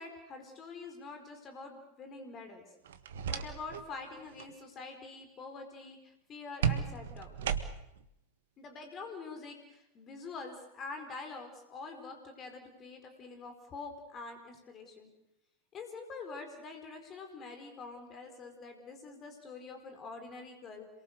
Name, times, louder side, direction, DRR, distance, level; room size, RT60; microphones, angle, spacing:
voice 1, 0.0-2.6 3.3-7.3 8.6-15.1 15.7-20.9, left 4 dB, 30° left, 6 dB, 4.5 m, -46 dB
sound 1, 2.9-3.9 4.2-4.5 6.6-8.0, right 8 dB, 60° right, 1.6 m, -34 dB
27.5 x 22.5 x 6.7 m, 0.84 s
figure-of-eight pair, 90°, 0 cm